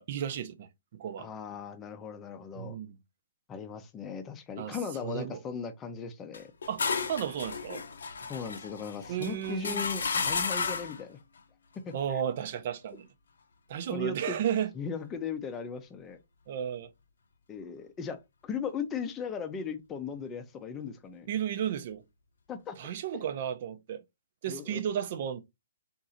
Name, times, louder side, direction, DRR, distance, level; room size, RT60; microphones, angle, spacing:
voice 1, 0.0-1.3 2.5-3.0 4.6-4.8 5.0-5.4 6.7-7.8 9.1-9.8 11.9-13.1 13.7-14.7 16.5-16.9 21.3-22.0 22.8-24.0 24.4-25.4, right 9 dB, 45° right, 0.7 m, -33 dB
voice 2, 1.2-2.8 3.5-6.5 8.3-11.2 11.8-12.2 13.9-14.4 14.8-16.2 17.5-21.3 22.5-22.8 24.5-24.8, left 6 dB, 15° left, 0.6 m, -38 dB
sound 1, 6.3-11.0, left 5 dB, 80° left, 0.8 m, -33 dB
3.7 x 2.6 x 4.2 m
hypercardioid pair, 155°, 0 cm